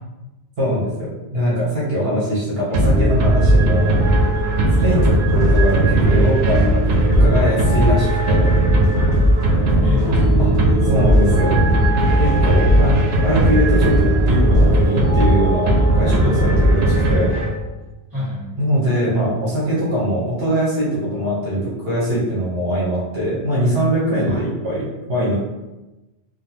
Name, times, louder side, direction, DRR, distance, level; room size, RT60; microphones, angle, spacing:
voice 1, 0.6-4.0 4.8-8.5 10.4-10.5 10.8-11.6 12.2-12.9 13.2-17.3 18.6-25.3, equal, 70° right, -7 dB, 1.2 m, -22 dB
sound 1, 2.7-17.8, right 1 dB, 85° right, 0.8 m, -16 dB
sound 2, 4.4-15.0, equal, 5° left, 0.7 m, -35 dB
voice 2, 9.8-10.5 16.2-16.5 18.1-18.6 24.3-24.4, left 1 dB, 20° right, -10 dB, 1.5 m, -27 dB
3.7 x 2.1 x 2.8 m, 1.0 s
omnidirectional pair, 1.1 m